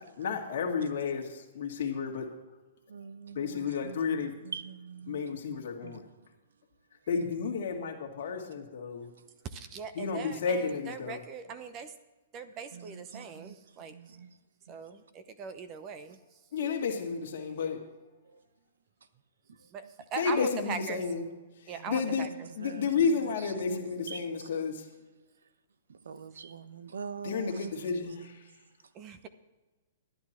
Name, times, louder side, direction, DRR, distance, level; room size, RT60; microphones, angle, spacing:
voice 1, 0.0-2.3 3.3-4.3 5.1-6.0 7.1-9.1 9.9-11.2 16.5-17.8 20.2-21.3 21.6-22.3 22.5-24.9 27.2-28.5, left 5 dB, 60° left, 1.9 m, -32 dB
voice 2, 2.9-6.3 9.2-9.4 12.7-14.4 14.7-14.8 18.2-18.4 19.5-19.9 21.7-24.5 25.9-27.7, right 6 dB, 80° right, 0.7 m, -45 dB
voice 3, 9.5-11.9 12.3-13.9 14.7-16.2 19.7-19.8 20.1-21.0 21.7-22.3 28.9-29.3, right 6 dB, 30° right, 0.8 m, -40 dB
10.5 x 10.5 x 4.4 m
hypercardioid pair, 130°, 0 cm